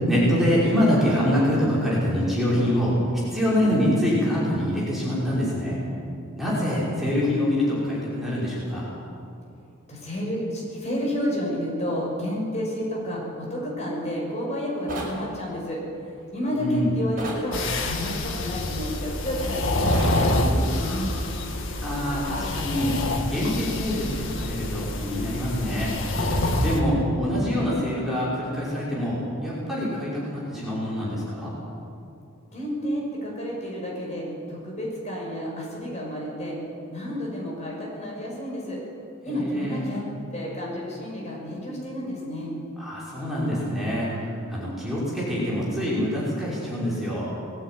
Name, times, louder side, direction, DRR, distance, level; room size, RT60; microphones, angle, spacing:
voice 1, 0.0-2.9 3.3-5.8 6.3-8.9 16.5-17.0 21.8-22.9 23.3-25.9 26.6-29.2 29.4-31.5 39.3-39.8 42.8-47.3, equal, ahead, -8 dB, 5.6 m, -25 dB
voice 2, 9.9-21.1 32.5-36.6 36.9-38.8 39.2-40.0 40.3-42.5, equal, 30° left, -4 dB, 6.5 m, -30 dB
sound 1, 14.9-15.2 17.2-17.5 19.9-20.2, right 2 dB, 40° right, 6.1 m, -32 dB
sound 2, 17.5-26.8, left 1 dB, 60° left, 2.0 m, -27 dB
21.0 x 16.0 x 9.7 m, 2.5 s
head